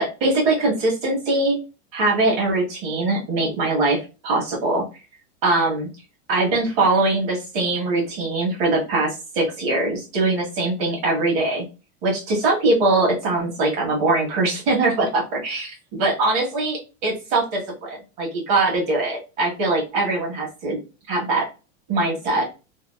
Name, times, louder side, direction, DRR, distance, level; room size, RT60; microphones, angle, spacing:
voice 1, 0.0-1.6 1.9-4.8 5.4-5.9 6.3-11.6 12.0-20.8 21.1-21.5 21.9-22.5, right 2 dB, 45° right, -1 dB, 1.2 m, -22 dB
2.8 x 2.3 x 2.3 m, 0.31 s
supercardioid pair, 145°, 35 cm